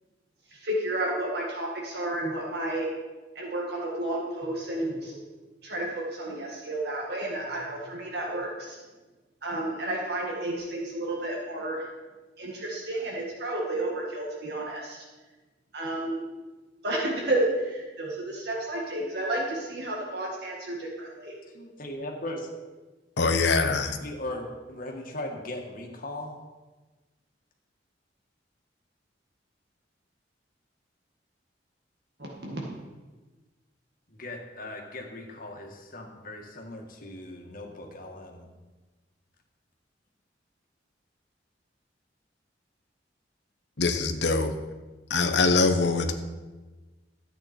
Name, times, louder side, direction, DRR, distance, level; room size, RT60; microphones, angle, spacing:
voice 1, 0.5-2.9 3.4-5.2 5.6-8.8 9.4-11.9 12.4-15.0 15.7-16.2 16.8-21.3 32.4-32.6, right 1 dB, 60° right, -2 dB, 1.9 m, -31 dB
voice 2, 21.5-22.5 24.0-26.4 34.1-38.5, left 1 dB, 50° left, 1 dB, 1.8 m, -38 dB
voice 3, 23.2-24.0 43.8-44.5 45.1-46.1, left 3 dB, 70° left, 6 dB, 1.1 m, -23 dB
13.5 x 8.7 x 4.4 m, 1.2 s
head